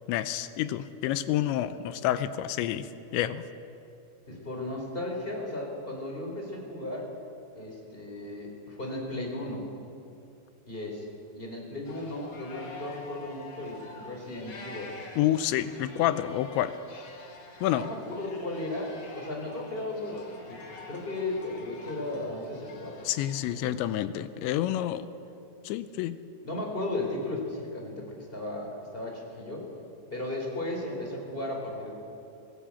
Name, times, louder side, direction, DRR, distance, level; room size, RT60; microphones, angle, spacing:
voice 1, 0.1-3.4 15.2-16.7 17.6-17.9 23.0-25.1 25.6-26.2, left 12 dB, 80° left, 12 dB, 2.9 m, -28 dB
voice 2, 4.3-7.1 7.5-9.7 10.7-11.0 11.3-14.9 17.7-23.0 23.4-23.8 26.4-29.7 30.1-31.9, left 2 dB, 15° left, 0 dB, 3.5 m, -35 dB
sound 1, 11.8-23.4, left 3 dB, 40° left, 2.6 m, -47 dB
21.5 x 17.5 x 8.7 m, 2.7 s
omnidirectional pair, 5.4 m